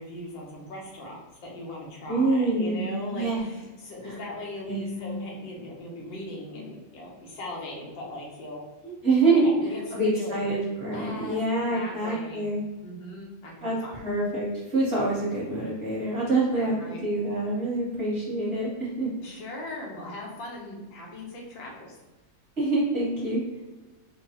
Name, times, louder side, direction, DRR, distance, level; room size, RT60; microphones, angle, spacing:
voice 1, 0.0-8.6 9.2-10.5 10.9-11.4 11.7-12.5 12.8-14.0 16.5-17.0 19.2-22.0, left 1 dB, 80° left, -2 dB, 1.6 m, -39 dB
voice 2, 2.1-3.4 4.0-4.2 4.6-5.2 8.8-12.6 13.6-19.1 22.6-23.4, right 2 dB, 35° right, -8 dB, 1.4 m, -26 dB
4.6 x 2.3 x 2.8 m, 1.1 s
omnidirectional pair, 2.1 m